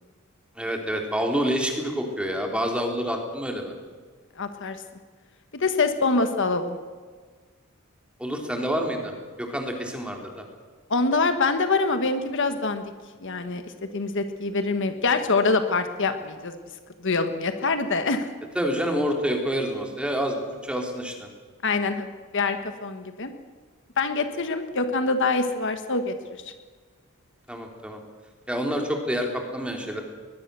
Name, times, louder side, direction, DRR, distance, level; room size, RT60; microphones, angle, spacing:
voice 1, 0.6-3.7 8.2-10.4 18.6-21.3 27.5-28.0 28.5-30.0, equal, 5° right, 2 dB, 3.4 m, -28 dB
voice 2, 4.4-4.8 5.5-6.8 10.9-12.8 13.2-16.6 17.0-18.3 21.6-22.1 22.3-23.3 24.0-26.4, left 3 dB, 60° left, 8 dB, 1.5 m, -25 dB
22.0 x 21.0 x 6.9 m, 1.5 s
head